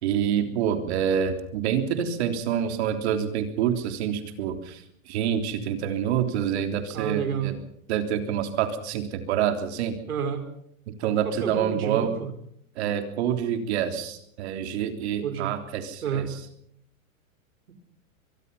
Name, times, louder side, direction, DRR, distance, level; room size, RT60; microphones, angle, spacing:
voice 1, 0.0-7.6 7.9-10.0 10.9-12.2 12.8-16.4, right 9 dB, 50° right, 7 dB, 3.6 m, -27 dB
voice 2, 6.9-7.5 10.1-10.5 11.0-12.3 15.2-15.5 16.0-16.3, right 8 dB, 85° right, 8 dB, 4.8 m, -30 dB
24.5 x 22.5 x 5.6 m, 0.70 s
hypercardioid pair, 155°, 42 cm